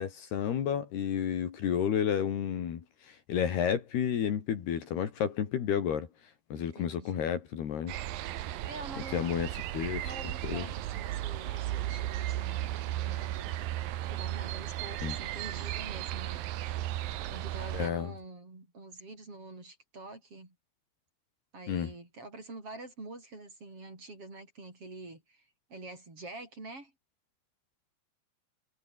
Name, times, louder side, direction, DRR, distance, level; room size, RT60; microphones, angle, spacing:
voice 1, 0.0-6.1 6.5-7.9 9.1-10.1 10.4-10.7 15.0-15.2 17.7-18.1 21.7-21.9, left 8 dB, 60° left, 4.2 m, -31 dB
voice 2, 6.5-7.4 8.3-9.5 10.0-13.7 14.1-16.4 17.3-20.6 21.5-26.9, right 2 dB, 30° right, 7.2 m, -46 dB
sound 1, 7.9-17.9, right 14 dB, 70° right, 2.3 m, -35 dB
omnidirectional pair, 5.5 m